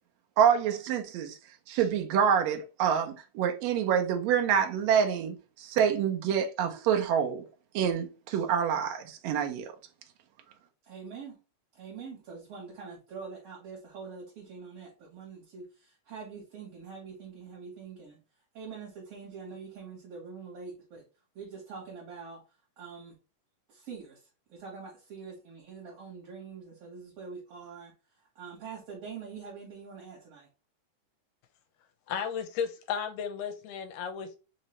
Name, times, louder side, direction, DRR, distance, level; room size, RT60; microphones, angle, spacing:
voice 1, 0.4-1.4 1.7-7.4 7.7-9.7, right 8 dB, 85° right, 1.5 m, -27 dB
voice 2, 10.9-11.4 11.7-18.2 18.5-21.0 21.3-22.4 22.8-23.2 23.7-24.2 24.5-27.9 28.4-30.5, right 5 dB, 55° right, 2.4 m, -44 dB
voice 3, 32.1-34.4, left 7 dB, 85° left, 2.2 m, -34 dB
5.2 x 2.8 x 3.0 m
omnidirectional pair, 3.8 m